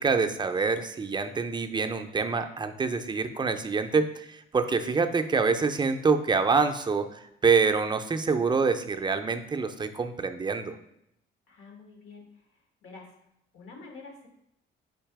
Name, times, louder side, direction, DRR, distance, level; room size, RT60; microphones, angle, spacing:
voice 1, 0.0-10.7, right 4 dB, 25° right, 7 dB, 0.4 m, -26 dB
voice 2, 11.5-13.1 13.5-14.3, left 4 dB, 85° left, 2 dB, 1.1 m, -48 dB
4.0 x 2.8 x 4.6 m, 0.79 s
cardioid pair, 90°, 20 cm